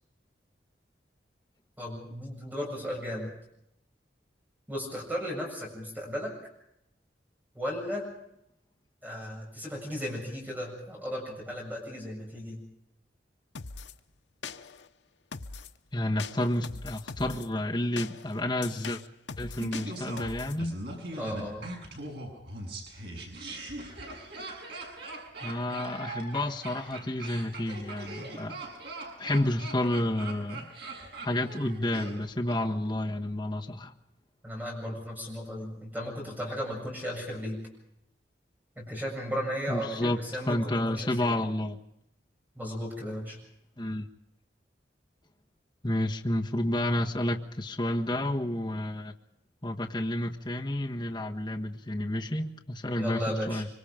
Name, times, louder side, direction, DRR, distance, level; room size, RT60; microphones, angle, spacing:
voice 1, 1.8-3.3 4.7-6.3 7.5-8.1 9.0-12.6 21.2-21.7 34.4-37.6 38.8-41.3 42.6-43.4 53.0-53.6, equal, 10° right, -1 dB, 7.5 m, -35 dB
sound 1, 13.6-13.9 14.4-14.9 15.3-15.8 16.2-17.5 18.0-20.6, left 5 dB, 80° left, 1.0 m, -41 dB
voice 2, 15.9-19.0 19.4-20.8 25.4-28.6 29.2-30.7 31.2-33.9 39.7-40.2 40.5-41.8 43.8-44.1 45.8-49.1 49.6-53.7, left 1 dB, 25° left, 1 dB, 1.5 m, -30 dB
Laughter, 19.6-32.6 32.9-33.0, right 2 dB, 65° right, 7.0 m, -41 dB
25.0 x 25.0 x 5.2 m, 0.79 s
head